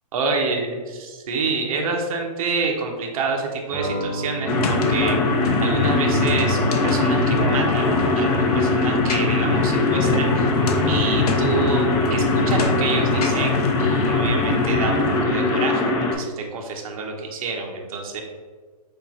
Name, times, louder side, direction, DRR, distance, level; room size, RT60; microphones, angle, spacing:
voice 1, 0.1-5.2 5.6-10.5 10.9-18.2, right 4 dB, 60° right, 1 dB, 0.8 m, -28 dB
Clean Guitar, 3.7-11.8, equal, 10° right, 1.2 m, -32 dB
sound 1, 4.4-16.1, left 2 dB, 30° left, 0.7 m, -22 dB
sound 2, 4.5-15.2, left 4 dB, 65° left, 0.7 m, -25 dB
4.7 x 2.6 x 4.1 m, 1.4 s
hypercardioid pair, 130°, 21 cm